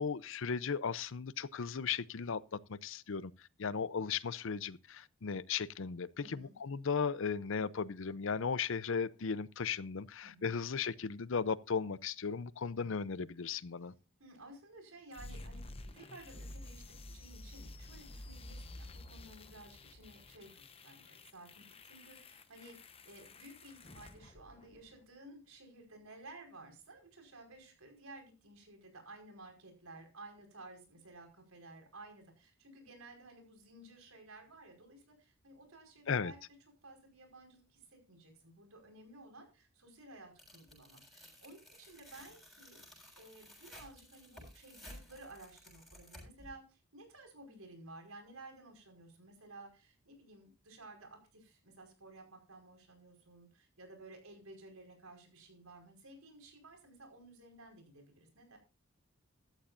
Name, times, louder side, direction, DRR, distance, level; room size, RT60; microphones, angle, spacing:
voice 1, 0.0-3.3 3.6-13.9 36.1-36.3, left 6 dB, 65° left, 0.6 m, -36 dB
voice 2, 6.2-6.5 10.2-10.5 14.2-15.6 15.9-36.4 36.8-58.6, right 2 dB, 85° right, 5.2 m, -55 dB
sound 1, 15.1-25.1, left 2 dB, 25° left, 0.9 m, -51 dB
Tearing, 40.4-46.5, left 1 dB, ahead, 7.5 m, -55 dB
14.5 x 13.0 x 2.6 m
head